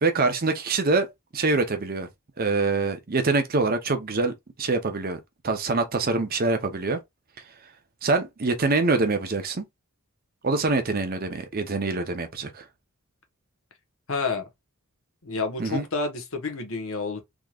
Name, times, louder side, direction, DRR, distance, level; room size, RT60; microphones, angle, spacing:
voice 1, 0.0-1.1 1.3-2.1 2.4-7.0 8.0-9.6 10.4-12.6 15.6-15.8, right 3 dB, 40° right, 0.7 m, -25 dB
voice 2, 14.1-14.5 15.2-17.2, left 4 dB, 70° left, 1.2 m, -29 dB
3.6 x 3.0 x 2.4 m
head